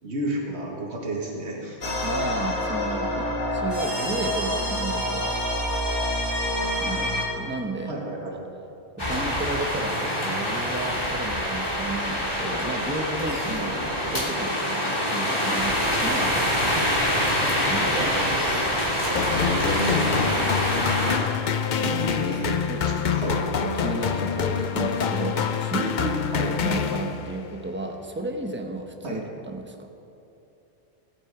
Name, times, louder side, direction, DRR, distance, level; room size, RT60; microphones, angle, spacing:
voice 1, 0.0-1.8 7.9-8.4 18.0-18.6 19.3-20.3 20.8-20.9 22.2-22.6 22.8-23.4 26.3-26.6 29.0-29.2, right 2 dB, 70° right, -2 dB, 2.1 m, -32 dB
sound 1, 1.8-7.3, left 1 dB, 85° left, 2.6 m, -27 dB
voice 2, 2.0-5.3 6.6-7.9 9.0-16.5 17.5-18.0 21.7-22.4 22.7-22.8 23.6-26.3 26.6-29.9, right 2 dB, 10° right, 4 dB, 0.9 m, -33 dB
sound 2, 9.0-21.2, equal, 25° left, 3.2 m, -25 dB
sound 3, 19.2-27.5, left 6 dB, 50° left, 0.7 m, -26 dB
17.5 x 8.8 x 4.9 m, 2.9 s
omnidirectional pair, 1.2 m